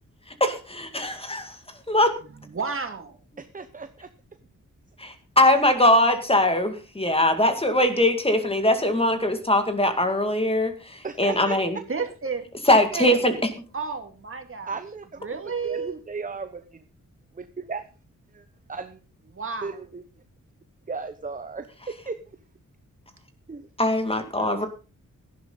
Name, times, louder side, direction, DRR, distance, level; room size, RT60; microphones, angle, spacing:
voice 1, 0.4-1.5 1.9-2.1 5.0-11.8 12.7-13.4 23.8-24.7, left 1 dB, 20° left, 2.2 m, -21 dB
voice 2, 2.2-3.2 11.9-12.5 12.9-13.3 13.7-14.8 15.2-16.0 19.3-19.7, right 5 dB, 45° right, 2.3 m, -32 dB
voice 3, 3.4-4.1 11.0-11.6 14.7-15.1 15.6-16.5 17.7-17.8 18.3-18.4 18.7-19.0 19.6-20.0 20.9-22.2 23.5-23.7 24.4-24.6, right 4 dB, 25° right, 0.9 m, -35 dB
17.0 x 11.5 x 4.0 m
wide cardioid pair, 130°, 31 cm